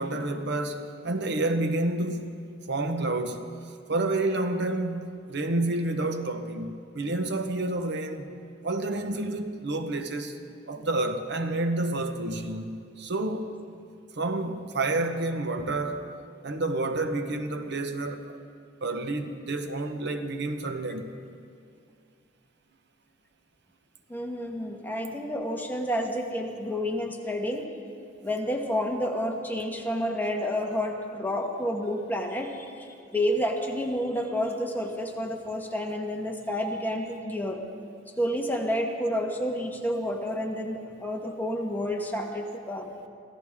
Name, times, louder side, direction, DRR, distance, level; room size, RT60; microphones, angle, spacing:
voice 1, 0.0-2.4 2.7-3.5 3.9-8.3 8.6-10.4 10.7-13.5 14.2-16.0 16.4-18.4 18.8-21.1, right 2 dB, 65° right, 1.0 m, -29 dB
voice 2, 24.1-27.7 28.2-37.6 38.2-42.9, equal, 10° left, 1.4 m, -30 dB
25.0 x 16.0 x 3.7 m
head